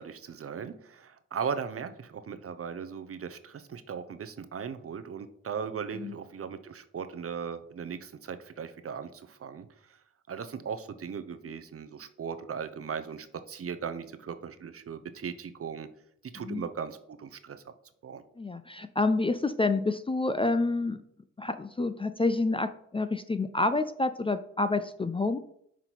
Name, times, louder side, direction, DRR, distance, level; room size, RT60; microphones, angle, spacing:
voice 1, 0.0-10.0 10.3-15.9 16.2-17.6 18.0-18.2, right 6 dB, 45° right, 11 dB, 0.7 m, -38 dB
voice 2, 18.4-21.0 21.4-25.4, left 3 dB, 15° left, 10 dB, 0.4 m, -28 dB
5.9 x 3.7 x 4.5 m, 0.68 s
supercardioid pair, 45°, 32 cm